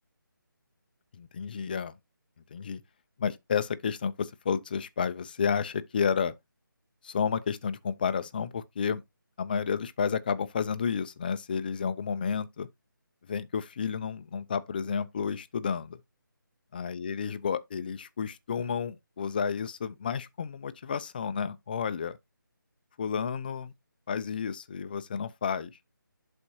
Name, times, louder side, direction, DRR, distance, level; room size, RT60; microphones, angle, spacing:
voice 1, 1.2-1.9 2.5-2.8 3.2-6.3 7.0-9.0 9.4-12.7 13.3-16.0 16.7-22.2 23.0-23.7 24.1-25.7, left 6 dB, 25° left, 0.5 m, -31 dB
11.0 x 4.3 x 2.7 m
figure-of-eight pair, 165°, 11 cm